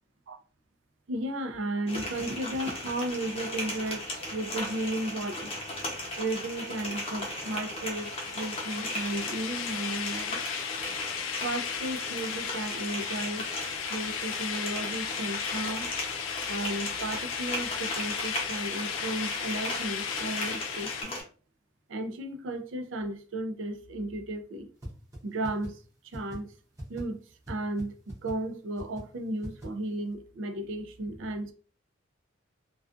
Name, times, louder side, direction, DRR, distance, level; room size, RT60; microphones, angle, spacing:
voice 1, 1.1-5.5 6.2-10.4 11.4-13.5 13.9-15.9 16.5-21.2 21.9-24.7 25.2-26.5 26.9-27.2 27.5-31.5, right 1 dB, 70° right, 0.4 m, -34 dB
sound 1, 1.9-21.2, left 1 dB, 30° left, 0.7 m, -37 dB
sound 2, 7.9-21.0, left 8 dB, 75° left, 0.3 m, -35 dB
sound 3, 24.8-24.9 25.1-25.2 25.4-25.7 26.1-26.4 26.8-27.0 27.4-27.5 27.8-27.9 28.1-28.3 28.8-29.0 29.4-29.7, equal, 15° right, 0.7 m, -39 dB
2.4 x 2.3 x 2.4 m
head